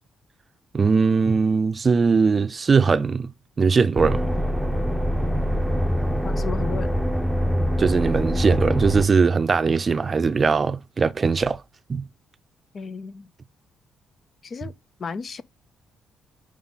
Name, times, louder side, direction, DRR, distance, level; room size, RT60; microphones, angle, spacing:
voice 1, 0.7-3.3 3.6-4.2 6.1-6.2 7.8-11.6 11.9-12.1, right 5 dB, 35° right, 0.5 m, -20 dB
sound 1, 3.9-9.0, equal, ahead, 0.8 m, -24 dB
voice 2, 6.2-6.9 12.7-13.3 14.4-14.7 15.0-15.4, left 5 dB, 45° left, 0.6 m, -33 dB
5.5 x 5.2 x 3.8 m
cardioid pair, 90°, 0 cm